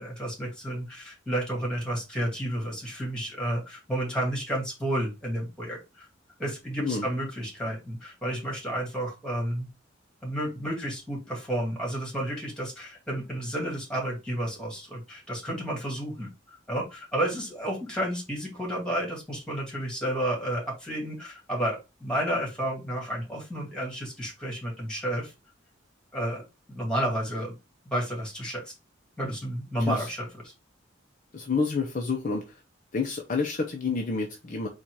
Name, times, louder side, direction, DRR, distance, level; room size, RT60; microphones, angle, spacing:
voice 1, 0.0-6.1 6.4-9.7 10.2-25.3 26.1-27.5 27.9-28.7 29.2-30.3, right 1 dB, 5° left, -2 dB, 2.0 m, -31 dB
voice 2, 31.3-32.6 32.9-34.7, left 4 dB, 45° left, 1 dB, 0.6 m, -29 dB
4.2 x 2.5 x 4.6 m, 0.26 s
head